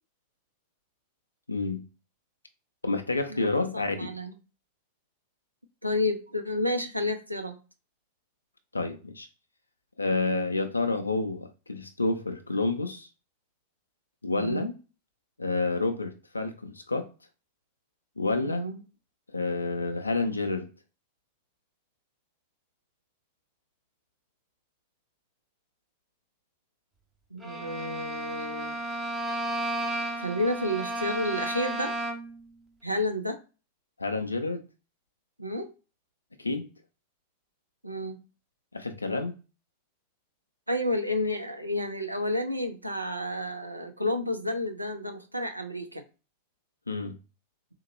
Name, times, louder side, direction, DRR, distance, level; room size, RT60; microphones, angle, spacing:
voice 1, 1.5-1.9 2.8-4.1 8.7-9.3 10.0-13.1 14.2-14.7 15.4-17.1 18.2-18.6 19.3-20.7 34.0-34.6 36.4-36.7 38.7-39.4 46.9-47.2, left 3 dB, 80° left, 0.3 m, -29 dB
voice 2, 3.7-4.3 5.8-7.6 14.3-14.7 18.4-18.8 27.3-28.7 30.2-31.9 32.8-33.4 35.4-35.7 37.8-38.2 40.7-46.0, left 1 dB, 85° right, 0.5 m, -30 dB
Bowed string instrument, 27.4-32.4, right 1 dB, 10° right, 0.7 m, -33 dB
3.6 x 2.1 x 2.9 m
figure-of-eight pair, 90°, 0 cm